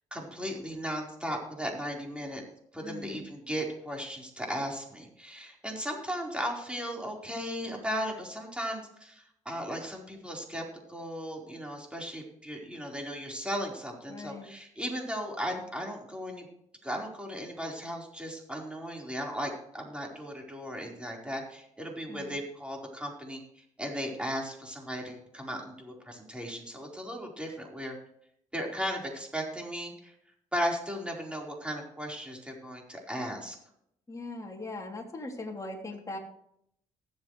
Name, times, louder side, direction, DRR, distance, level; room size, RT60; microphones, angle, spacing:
voice 1, 0.1-2.4 2.7-10.6 10.9-16.4 16.8-27.9 28.5-30.1 30.5-33.6, equal, 5° right, 0 dB, 4.4 m, -36 dB
voice 2, 2.8-3.2 14.1-14.5 22.1-22.3 34.1-36.2, left 2 dB, 25° left, 1 dB, 3.2 m, -40 dB
19.5 x 8.1 x 3.3 m, 0.72 s
supercardioid pair, 60°, 14 cm